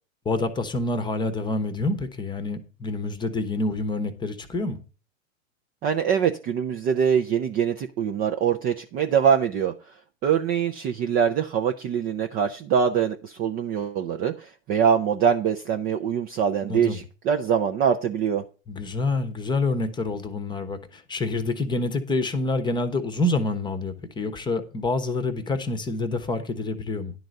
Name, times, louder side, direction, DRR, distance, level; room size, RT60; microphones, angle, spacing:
voice 1, 0.2-4.8 16.7-17.0 18.7-27.1, left 2 dB, 10° left, 1.0 m, -27 dB
voice 2, 5.8-9.9 10.2-18.4, right 7 dB, 25° right, 0.5 m, -23 dB
11.0 x 4.0 x 7.6 m
hypercardioid pair, 120°, 40 cm